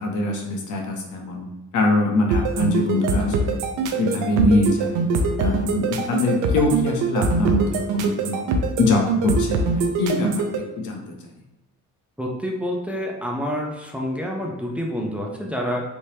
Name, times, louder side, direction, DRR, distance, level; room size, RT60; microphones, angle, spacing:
voice 1, 0.0-1.5 1.7-3.6 4.0-5.0 5.4-8.5 8.8-11.1, left 2 dB, 75° left, 1 dB, 0.8 m, -23 dB
sound 1, 2.3-10.6, right 3 dB, 90° right, 0.5 m, -23 dB
voice 2, 12.2-15.8, equal, 5° right, -1 dB, 0.6 m, -28 dB
3.4 x 3.0 x 2.8 m, 1.0 s
cardioid pair, 90°, 30 cm